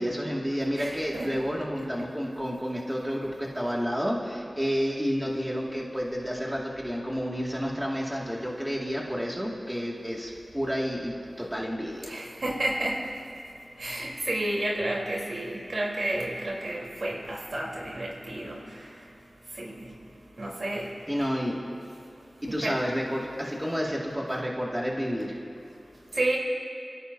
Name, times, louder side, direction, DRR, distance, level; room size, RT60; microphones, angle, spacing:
voice 1, 0.0-12.1 21.1-21.6 22.4-25.4, equal, 10° right, -3 dB, 2.3 m, -30 dB
voice 2, 0.8-1.3 12.1-13.0 13.8-18.6 19.6-19.8 20.4-20.8 22.6-22.8 26.2-26.4, right 1 dB, 65° right, -3 dB, 3.9 m, -30 dB
28.0 x 16.5 x 2.8 m, 2.4 s
wide cardioid pair, 65°, 0 cm